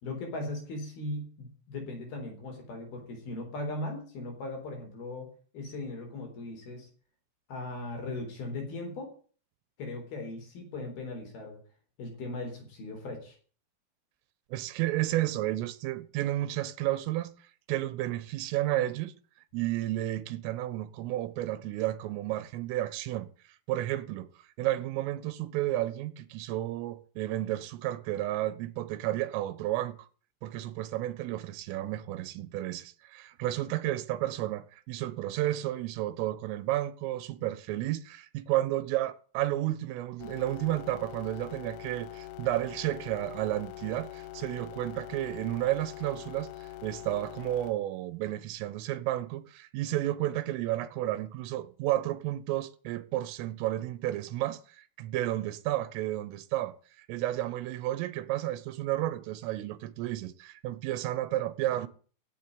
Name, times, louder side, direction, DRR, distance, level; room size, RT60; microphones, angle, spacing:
voice 1, 0.0-5.3 5.5-6.9 7.5-9.1 9.8-11.6 12.0-13.4, left 2 dB, 50° left, 5.6 m, -38 dB
voice 2, 14.5-17.3 17.7-19.1 19.5-23.3 23.7-24.3 24.6-30.0 30.4-46.5 46.8-56.7 57.1-61.9, right 15 dB, 90° right, 3.7 m, -32 dB
sound 1, 40.2-47.7, left 15 dB, 75° left, 3.6 m, -44 dB
16.0 x 7.3 x 8.7 m
omnidirectional pair, 5.7 m